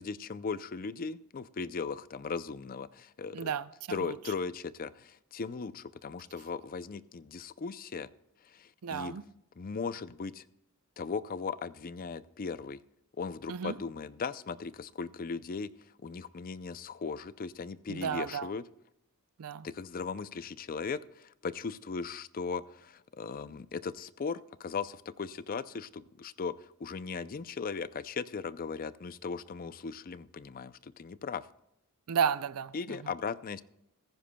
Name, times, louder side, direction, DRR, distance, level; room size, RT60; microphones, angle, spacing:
voice 1, 0.0-3.5 3.9-8.1 8.5-9.1 9.6-10.4 11.0-12.8 13.2-15.7 16.0-18.6 19.6-31.5 32.7-33.6, left 5 dB, 40° left, 0.4 m, -38 dB
voice 2, 3.3-4.2 8.8-9.2 13.5-13.8 17.9-18.5 19.4-19.7 32.1-33.1, right 7 dB, 85° right, 0.5 m, -33 dB
15.5 x 15.0 x 2.2 m
head